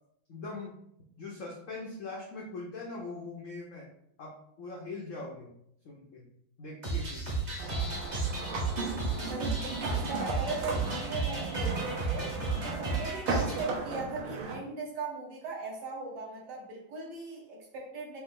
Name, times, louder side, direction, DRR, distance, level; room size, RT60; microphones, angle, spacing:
voice 1, 0.3-0.8 1.2-3.9 4.2-5.5 5.8-6.3 6.6-7.3, left 3 dB, 75° left, -3 dB, 0.7 m, -41 dB
sound 1, 6.8-13.7, right 3 dB, 40° right, 0.6 m, -33 dB
sound 2, 7.6-14.5, right 3 dB, 85° right, 1.8 m, -36 dB
voice 2, 9.1-12.3 12.6-18.2, right 3 dB, 60° right, -2 dB, 1.4 m, -39 dB
4.5 x 2.6 x 3.7 m, 0.72 s
omnidirectional pair, 2.3 m